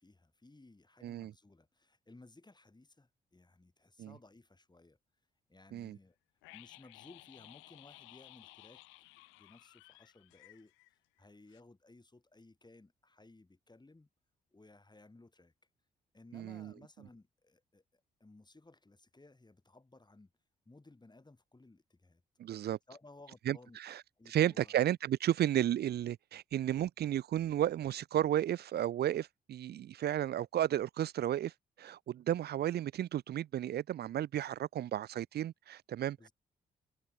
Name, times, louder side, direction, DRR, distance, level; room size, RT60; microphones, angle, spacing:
voice 1, 0.0-5.0 5.5-6.2 6.5-8.8 9.3-10.7 11.2-14.1 14.5-15.5 16.1-20.3 20.7-22.2 22.9-23.8 24.2-24.8 36.2-36.3, left 2 dB, 20° left, 7.9 m, -59 dB
sound 1, 6.4-11.2 11.5-11.6, left 23 dB, 80° left, 5.2 m, -57 dB
voice 2, 16.3-16.7 22.4-22.8 23.5-24.0 24.3-31.5 31.8-36.3, right 11 dB, 55° right, 0.5 m, -33 dB
hypercardioid pair, 45°, 20 cm